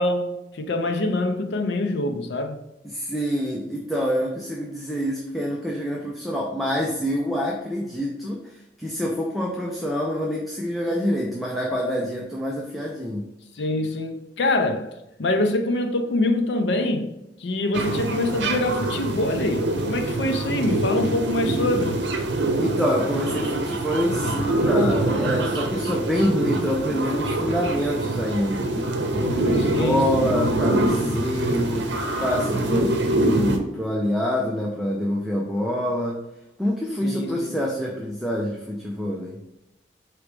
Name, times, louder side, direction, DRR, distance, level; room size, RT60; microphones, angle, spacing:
voice 1, 0.0-2.6 13.6-17.1 17.4-22.0 29.7-30.3 37.0-37.6, left 2 dB, 75° left, 0.6 m, -25 dB
voice 2, 2.9-13.3 22.6-28.7 29.1-31.9 32.2-36.2 36.6-39.4, equal, ahead, 0.5 m, -26 dB
sound 1, 17.7-33.6, right 1 dB, 85° right, 0.7 m, -25 dB
4.7 x 3.0 x 3.3 m
head